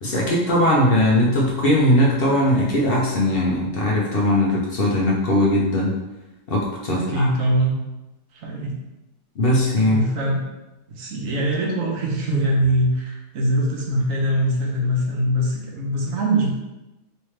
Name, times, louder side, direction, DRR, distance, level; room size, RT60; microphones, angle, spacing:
voice 1, 0.0-5.9 6.5-7.3 9.4-10.0, left 1 dB, 55° left, -3 dB, 0.7 m, -19 dB
voice 2, 7.0-7.8 8.3-8.7 9.8-10.4 10.9-16.5, right 1 dB, 75° right, -1 dB, 1.2 m, -22 dB
3.2 x 3.1 x 3.1 m, 1.0 s
omnidirectional pair, 1.4 m